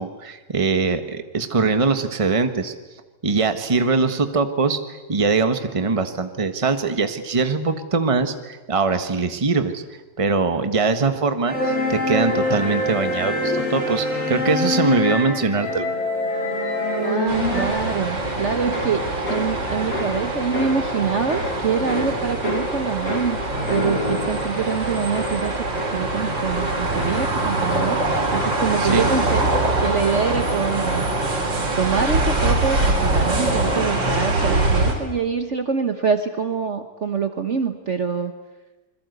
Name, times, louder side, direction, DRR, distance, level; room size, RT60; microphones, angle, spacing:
voice 1, 0.0-2.7 3.2-4.8 5.1-9.8 10.2-15.9 28.8-29.0, right 4 dB, 20° right, 8 dB, 1.3 m, -22 dB
sound 1, 11.5-17.6, left 1 dB, 35° left, 7.8 m, -24 dB
voice 2, 17.0-23.4 23.7-25.5 25.9-28.0 28.3-29.5 29.8-31.0 31.7-38.3, right 6 dB, 45° right, 7 dB, 1.3 m, -25 dB
sound 2, 17.3-34.9, right 2 dB, 80° right, 5.0 m, -23 dB
sound 3, 18.2-29.8 30.1-30.6, left 2 dB, 55° left, 4.7 m, -33 dB
27.5 x 22.0 x 8.2 m, 1.1 s
omnidirectional pair, 2.0 m